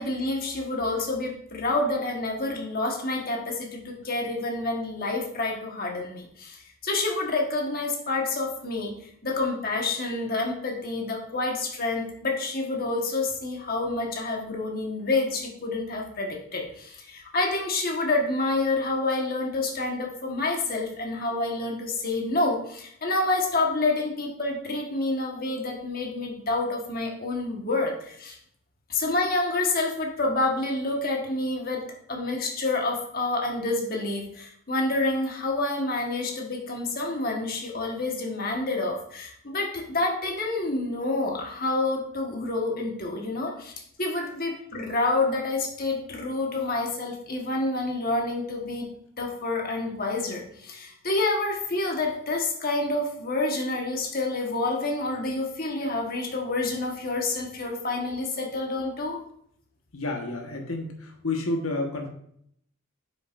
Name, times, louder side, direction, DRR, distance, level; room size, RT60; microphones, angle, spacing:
voice 1, 0.0-8.9 9.2-28.4 28.9-43.7 44.0-48.9 49.2-59.2, left 2 dB, 45° left, 1 dB, 1.4 m, -28 dB
voice 2, 59.9-62.1, left 2 dB, 70° left, 3 dB, 1.3 m, -30 dB
8.8 x 6.8 x 2.5 m, 0.68 s
head